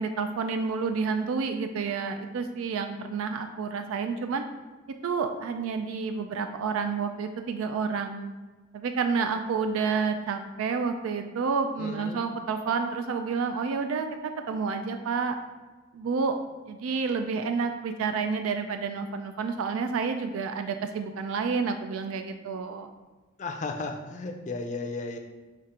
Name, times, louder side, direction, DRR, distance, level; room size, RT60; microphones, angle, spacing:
voice 1, 0.0-4.4 5.0-8.3 8.7-15.4 15.9-16.4 16.7-22.9, right 5 dB, 90° right, 7 dB, 0.3 m, -29 dB
voice 2, 11.8-12.2 23.4-25.2, left 3 dB, 35° left, 3 dB, 0.4 m, -34 dB
5.1 x 2.4 x 4.2 m, 1.3 s
head